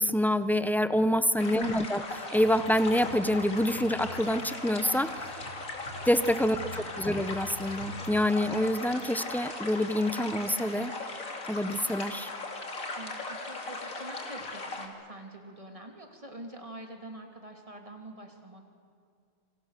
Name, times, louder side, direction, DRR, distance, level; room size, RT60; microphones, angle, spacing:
voice 1, 0.0-2.0 2.3-5.3 6.1-10.9 11.5-12.3, left 1 dB, ahead, 12 dB, 0.5 m, -27 dB
sound 1, 1.4-14.9, left 2 dB, 80° left, 3.1 m, -38 dB
voice 2, 1.4-2.0 6.4-7.1 12.9-18.7, right 1 dB, 25° right, 3 dB, 3.2 m, -46 dB
sound 2, 2.4-9.0, left 1 dB, 65° right, 6.3 m, -46 dB
27.5 x 26.5 x 6.7 m, 2.3 s
omnidirectional pair, 1.4 m